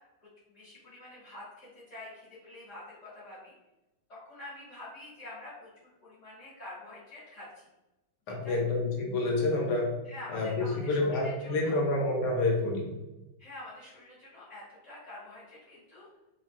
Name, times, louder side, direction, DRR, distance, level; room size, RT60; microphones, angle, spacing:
voice 1, 0.5-3.5 4.1-7.5 8.4-8.6 10.0-11.8 13.4-16.1, left 2 dB, 45° left, -10 dB, 1.2 m, -47 dB
voice 2, 8.3-9.9 10.3-12.9, left 2 dB, 65° left, 0 dB, 1.1 m, -28 dB
3.3 x 2.2 x 2.5 m, 1.0 s
omnidirectional pair, 2.3 m